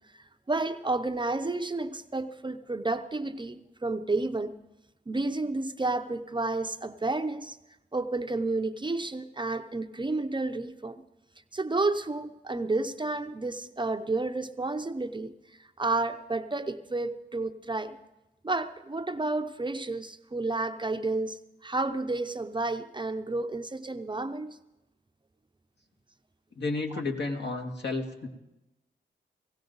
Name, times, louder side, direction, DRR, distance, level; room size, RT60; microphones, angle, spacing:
voice 1, 0.1-4.5 5.1-7.6 7.9-11.0 11.5-15.3 15.8-18.0 18.4-24.6, right 2 dB, 25° right, 8 dB, 0.7 m, -31 dB
voice 2, 26.6-28.3, left 3 dB, 65° left, 2 dB, 1.9 m, -32 dB
18.0 x 16.5 x 4.0 m, 0.96 s
cardioid pair, 70°, 19 cm